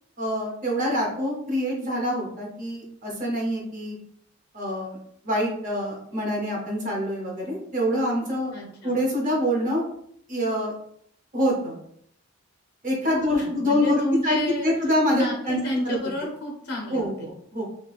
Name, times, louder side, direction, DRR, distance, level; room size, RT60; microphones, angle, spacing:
voice 1, 0.2-4.0 4.5-5.0 5.2-8.5 8.8-9.8 10.3-10.7 11.3-11.8 12.8-16.0 16.9-17.6, equal, 35° right, -1 dB, 0.7 m, -25 dB
voice 2, 8.5-9.0 13.1-14.7 15.1-17.3, left 2 dB, 50° left, 0 dB, 0.5 m, -30 dB
3.2 x 2.8 x 2.3 m, 0.68 s
head